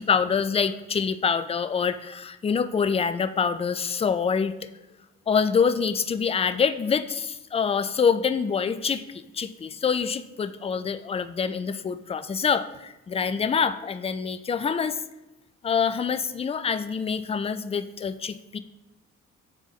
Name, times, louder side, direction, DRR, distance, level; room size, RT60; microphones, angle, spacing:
voice 1, 0.0-4.5 5.3-15.0 15.6-18.6, left 6 dB, 20° left, 12 dB, 0.3 m, -26 dB
9.1 x 3.5 x 3.1 m, 0.99 s
hypercardioid pair, 45°, 36 cm